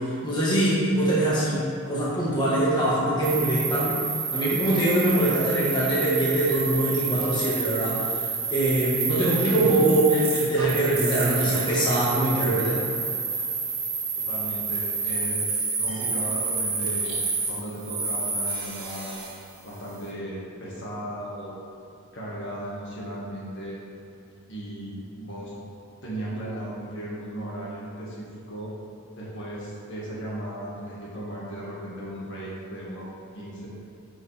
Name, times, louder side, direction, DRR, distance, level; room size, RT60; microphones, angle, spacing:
voice 1, 0.0-4.0 4.3-12.9, right 1 dB, 20° left, -8 dB, 1.5 m, -23 dB
sound 1, 3.2-19.4, right 4 dB, 60° right, 1.7 m, -29 dB
voice 2, 14.2-17.2 17.5-19.2 19.6-21.6 22.1-23.8 24.5-25.5 26.0-28.7 29.2-33.1 33.3-33.7, right 1 dB, 55° left, -6 dB, 1.8 m, -36 dB
10.5 x 5.1 x 3.5 m, 2.6 s
head